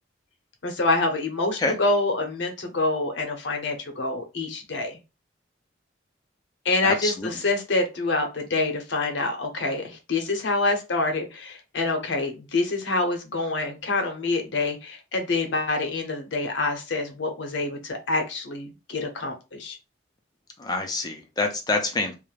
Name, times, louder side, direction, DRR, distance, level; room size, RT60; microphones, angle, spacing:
voice 1, 0.6-5.0 6.6-19.8, left 2 dB, 75° left, 5 dB, 0.7 m, -26 dB
voice 2, 6.8-7.3 20.6-22.1, left 3 dB, 20° left, 4 dB, 0.4 m, -26 dB
2.4 x 2.0 x 3.1 m, 0.28 s
head